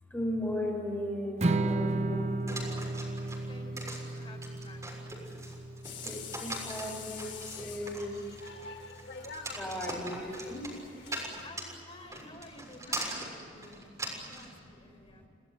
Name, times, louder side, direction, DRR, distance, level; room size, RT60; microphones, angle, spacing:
voice 1, 0.1-3.5 4.1-4.5 4.9-5.5 6.0-8.3 9.5-11.4 12.7-15.3, left 1 dB, 10° left, -1 dB, 6.3 m, -39 dB
Strum, 1.4-7.7, right 2 dB, 35° right, 0.7 m, -34 dB
sound 1, 2.5-14.5, right 1 dB, 15° right, 6.7 m, -41 dB
voice 2, 3.5-4.8 9.4-9.9 11.4-15.3, left 1 dB, 30° left, 2 dB, 5.1 m, -52 dB
sound 2, 5.8-11.5, left 6 dB, 65° left, 3.0 m, -46 dB
30.0 x 19.0 x 9.2 m, 2.4 s
head